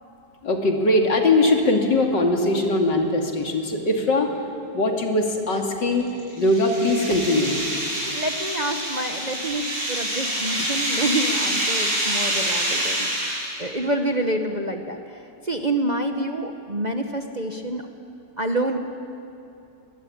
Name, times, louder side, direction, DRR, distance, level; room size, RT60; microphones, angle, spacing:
voice 1, 0.4-4.3 4.7-7.5, left 2 dB, 80° left, 2 dB, 3.2 m, -21 dB
sound 1, 5.9-13.7, right 1 dB, 80° right, 8.7 m, -26 dB
voice 2, 8.1-15.0 15.4-17.9 18.4-18.8, right 1 dB, 30° right, 4 dB, 1.0 m, -27 dB
23.0 x 22.5 x 8.7 m, 2.8 s
omnidirectional pair, 1.9 m